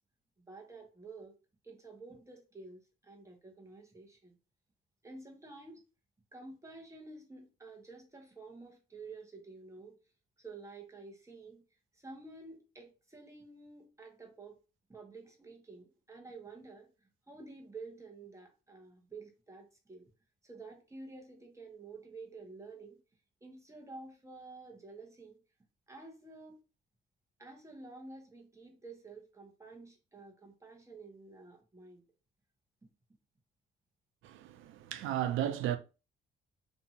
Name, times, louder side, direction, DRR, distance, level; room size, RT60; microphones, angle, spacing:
voice 1, 0.5-1.3 1.6-4.4 5.0-5.8 6.3-10.0 10.4-11.6 11.9-14.6 14.9-20.1 20.4-23.0 23.4-25.4 25.9-26.6 27.4-32.0, right 3 dB, 15° right, 1.0 m, -50 dB
voice 2, 34.2-35.8, right 11 dB, 85° right, 0.4 m, -34 dB
2.7 x 2.5 x 2.7 m
cardioid pair, 90°, 20 cm